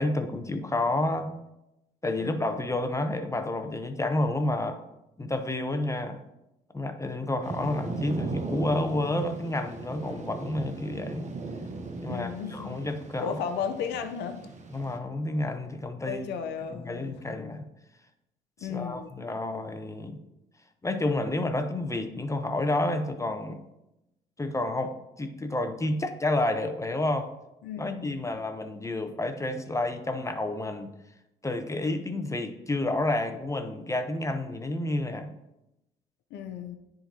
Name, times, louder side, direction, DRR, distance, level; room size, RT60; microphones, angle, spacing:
voice 1, 0.0-1.3 2.0-4.8 5.2-6.2 6.7-11.3 12.0-13.4 14.7-16.3 16.8-17.6 18.7-20.2 20.8-23.6 24.4-27.3 27.8-30.9 31.4-35.3, left 2 dB, 20° left, 7 dB, 0.8 m, -30 dB
Thunder / Rain, 7.4-15.0, right 3 dB, 45° right, 0.9 m, -37 dB
voice 2, 12.1-12.8 13.2-14.4 16.0-17.2 18.6-19.1 27.6-28.3 36.3-36.8, left 7 dB, 80° left, 7 dB, 0.6 m, -34 dB
10.0 x 3.8 x 2.8 m, 0.91 s
supercardioid pair, 60°, 17 cm